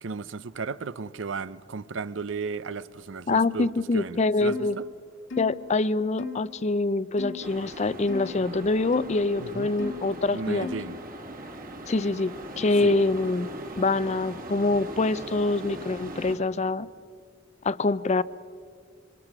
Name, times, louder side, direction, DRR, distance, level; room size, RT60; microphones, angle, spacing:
voice 1, 0.0-3.7 3.9-4.8 9.4-9.7 10.3-11.0 12.8-13.0, right 4 dB, 75° right, 0.6 m, -35 dB
voice 2, 3.3-4.8 5.4-10.7 11.9-13.5 13.8-16.9 17.6-18.2, left 3 dB, 35° left, 0.5 m, -25 dB
sound 1, 4.5-4.8 5.3-5.6 6.2-6.4 7.2-7.5 8.1-8.3 8.9-9.2 9.8-10.1 10.6-10.9, left 5 dB, 70° left, 1.9 m, -36 dB
sound 2, 7.4-16.4, right 1 dB, 50° right, 2.3 m, -40 dB
26.0 x 24.0 x 5.9 m
head